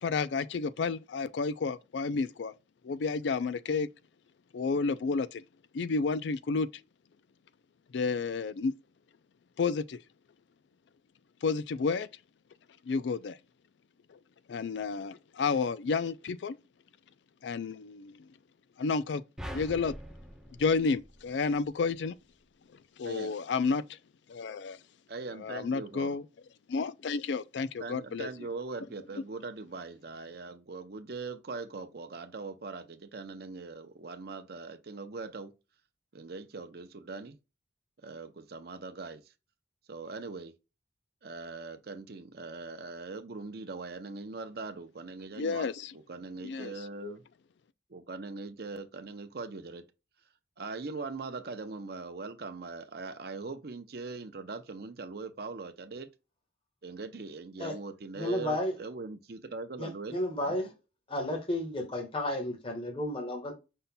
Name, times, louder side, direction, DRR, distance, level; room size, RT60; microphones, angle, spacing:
voice 1, 0.0-2.5 2.8-3.9 4.5-5.4 5.7-6.7 7.9-8.8 9.6-10.0 11.4-12.1 12.9-13.4 14.5-16.6 17.4-18.2 18.8-19.2 19.5-19.9 20.6-22.1 23.0-23.8 24.3-24.8 25.4-26.2 26.7-28.3 45.3-45.9 46.4-46.7 47.0-47.1, left 4 dB, 75° left, 0.4 m, -31 dB
sound 1, 19.4-21.8, equal, 5° right, 0.6 m, -44 dB
voice 2, 23.0-23.4 25.1-26.2 27.8-35.5 36.1-37.4 38.0-39.2 39.9-40.5 41.2-45.7 45.9-47.2 47.9-49.8 50.6-56.1 56.8-60.6, right 3 dB, 55° right, 0.6 m, -41 dB
voice 3, 58.2-58.7 59.8-60.7 61.1-63.5, left 1 dB, 30° left, 1.4 m, -32 dB
5.5 x 4.0 x 2.2 m
head